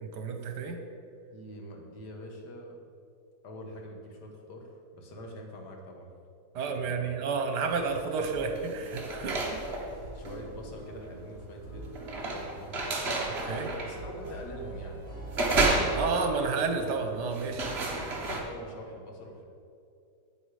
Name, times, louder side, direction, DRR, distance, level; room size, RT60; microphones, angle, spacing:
voice 1, 0.0-0.8 6.5-9.6 13.3-13.7 15.9-17.7, right 4 dB, 80° right, 5 dB, 1.6 m, -31 dB
voice 2, 1.3-2.8 3.4-4.7 4.9-6.1 6.7-7.1 10.1-12.9 13.8-15.1 18.2-19.4, equal, 80° left, 1 dB, 2.0 m, -44 dB
sound 1, 7.7-8.1 8.4-18.4, right 2 dB, 40° right, 1.4 m, -32 dB
sound 2, 8.2-16.5, right 1 dB, 40° left, 2.9 m, -47 dB
9.3 x 8.8 x 4.9 m, 2.4 s
omnidirectional pair, 1.8 m